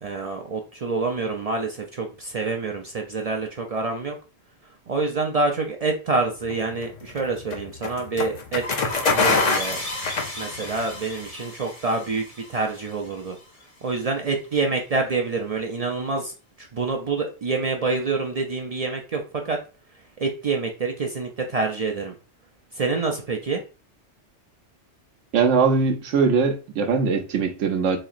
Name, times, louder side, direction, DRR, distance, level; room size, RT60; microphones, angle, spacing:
voice 1, 0.0-4.2 4.9-8.6 9.1-9.8 10.4-12.2 12.5-13.4 13.8-19.6 20.2-22.1 22.7-23.6, right 3 dB, 60° right, 0.4 m, -27 dB
sound 1, 6.4-10.9, left 4 dB, 50° left, 0.5 m, -25 dB
sound 2, 8.6-13.9, left 1 dB, 35° left, 0.9 m, -35 dB
voice 2, 25.3-28.0, right 5 dB, 85° right, 1.0 m, -21 dB
4.2 x 2.8 x 2.4 m
omnidirectional pair, 1.2 m